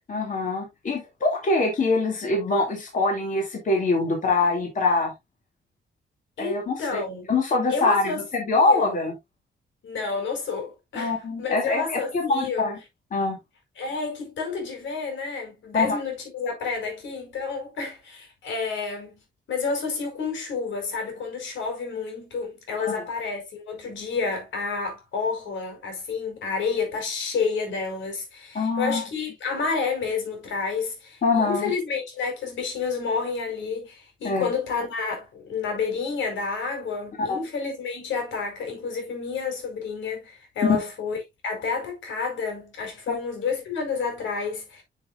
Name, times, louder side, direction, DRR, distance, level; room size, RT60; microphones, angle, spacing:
voice 1, 0.1-5.1 6.4-7.0 7.3-9.1 10.9-12.8 13.1-13.4 15.7-16.0 22.8-23.0 28.5-29.0 31.2-31.7 34.2-34.5 37.3-37.4 40.6-40.8 43.1-43.2, left 3 dB, 45° left, 2.6 m, -24 dB
voice 2, 6.4-7.3 7.7-8.2 8.5-9.0 9.8-12.7 13.8-19.2 19.5-41.2 41.4-44.8, left 5 dB, 85° left, 4.8 m, -30 dB
10.0 x 5.8 x 2.5 m
cardioid pair, 135°, 19 cm